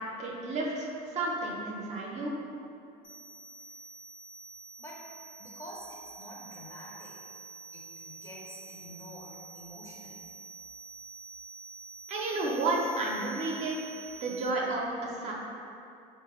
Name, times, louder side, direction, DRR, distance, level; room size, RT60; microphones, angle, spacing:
voice 1, 0.2-2.3 12.1-13.8 14.2-15.3, right 2 dB, 45° right, -3 dB, 0.5 m, -31 dB
sound 1, 3.0-14.5, right 4 dB, 65° left, 0.7 m, -48 dB
voice 2, 5.4-7.4 7.7-10.1, equal, 20° left, -4 dB, 0.5 m, -48 dB
3.1 x 2.2 x 2.9 m, 2.5 s
cardioid pair, 115°, 16 cm